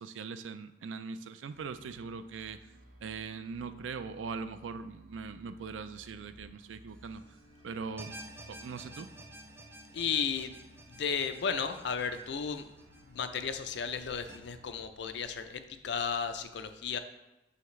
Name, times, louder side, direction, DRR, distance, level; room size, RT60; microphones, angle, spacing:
voice 1, 0.0-2.6 3.0-7.2 7.6-8.1 8.5-9.1, right 5 dB, 80° right, 11 dB, 0.4 m, -41 dB
sound 1, 1.5-14.7, equal, 45° right, 1.0 m, -58 dB
sound 2, 8.0-14.4, right 1 dB, 10° right, 0.4 m, -51 dB
voice 2, 9.9-10.6 10.9-12.7 13.0-17.0, left 6 dB, 65° left, 9 dB, 0.4 m, -34 dB
5.7 x 5.7 x 3.1 m, 0.99 s
head